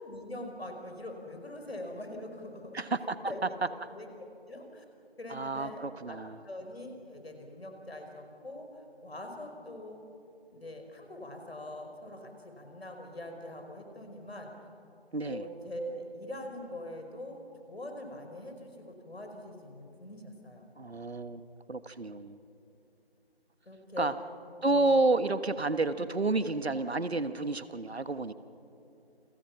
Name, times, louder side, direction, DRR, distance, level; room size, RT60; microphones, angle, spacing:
voice 1, 0.0-2.8 3.2-3.5 3.9-4.8 5.2-6.2 6.4-8.7 9.0-10.0 10.5-14.5 15.2-17.4 17.7-20.6 23.7-24.1 24.7-24.8, left 1 dB, 70° left, 4 dB, 5.0 m, -43 dB
voice 2, 2.7-3.3 5.3-6.4 15.1-15.4 20.8-22.4 24.0-24.1 24.6-28.3, right 2 dB, 75° right, 12 dB, 1.4 m, -30 dB
29.0 x 23.5 x 5.9 m, 2.7 s
figure-of-eight pair, 160°, 32 cm